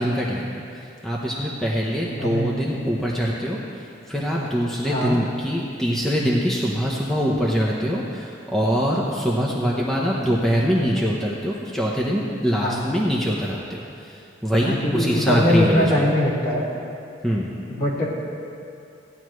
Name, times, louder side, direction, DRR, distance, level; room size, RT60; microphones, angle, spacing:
voice 1, 0.0-15.9 17.2-17.5, equal, ahead, -5 dB, 0.8 m, -24 dB
voice 2, 2.2-2.5 4.8-5.2 12.5-12.8 14.6-16.7 17.7-18.1, left 1 dB, 50° left, -7 dB, 2.6 m, -22 dB
16.5 x 10.5 x 3.2 m, 2.6 s
head